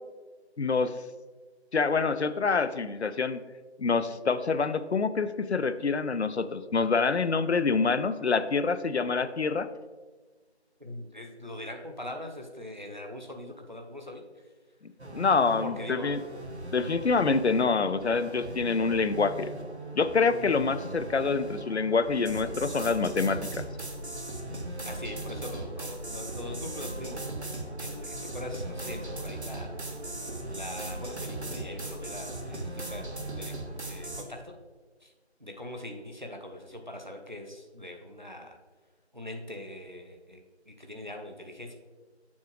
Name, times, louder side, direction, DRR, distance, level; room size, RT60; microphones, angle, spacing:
voice 1, 0.6-0.9 1.7-3.4 3.8-9.7 15.1-16.2 16.7-19.5 19.9-23.6, left 4 dB, 75° left, 13 dB, 0.5 m, -26 dB
voice 2, 10.8-14.2 15.6-16.2 24.8-27.4 27.8-29.7 30.5-33.5 33.8-34.5 35.0-35.1 35.4-38.6 39.1-41.8, left 1 dB, 45° right, 3 dB, 0.7 m, -42 dB
sound 1, 15.0-34.2, right 1 dB, 75° right, 1.1 m, -38 dB
7.2 x 5.8 x 3.1 m, 1.3 s
figure-of-eight pair, 180°, 34 cm